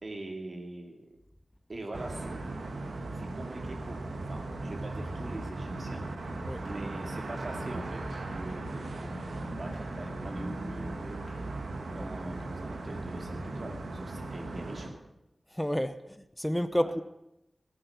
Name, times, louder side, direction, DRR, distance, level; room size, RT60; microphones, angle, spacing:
voice 1, 0.0-1.1 1.7-2.6 3.2-6.0 6.6-9.1 9.6-11.2 11.9-15.0 16.7-16.9, right 2 dB, 55° right, 3 dB, 2.4 m, -43 dB
sound 1, 1.9-14.9, right 2 dB, 85° right, 1.5 m, -37 dB
Musical instrument, 5.0-11.7, left 3 dB, 70° left, 2.9 m, -52 dB
voice 2, 15.5-17.0, equal, 5° left, 12 dB, 0.7 m, -30 dB
14.5 x 8.8 x 6.9 m, 0.87 s
cardioid pair, 55°, 0 cm